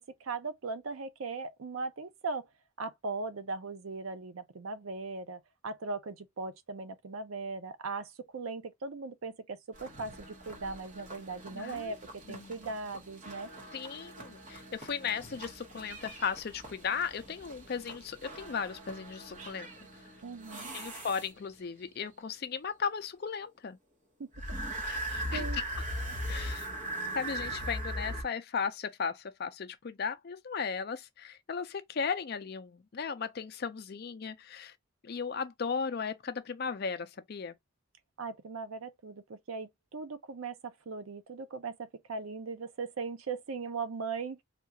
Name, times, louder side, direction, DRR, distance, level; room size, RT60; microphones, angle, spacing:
voice 1, 0.0-2.5 2.8-13.5 20.2-20.7 24.2-24.3 24.9-25.1 25.3-25.6 38.2-44.4, right 4 dB, 80° right, 0.6 m, -39 dB
sound 1, 9.7-21.6 24.3-28.2, right 1 dB, 35° right, 1.0 m, -40 dB
voice 2, 11.5-12.0 12.3-12.6 13.7-19.7 20.7-23.8 24.9-25.6 26.3-26.7 27.1-34.7 35.0-37.6, left 6 dB, 50° left, 0.4 m, -36 dB
3.5 x 2.4 x 2.8 m
head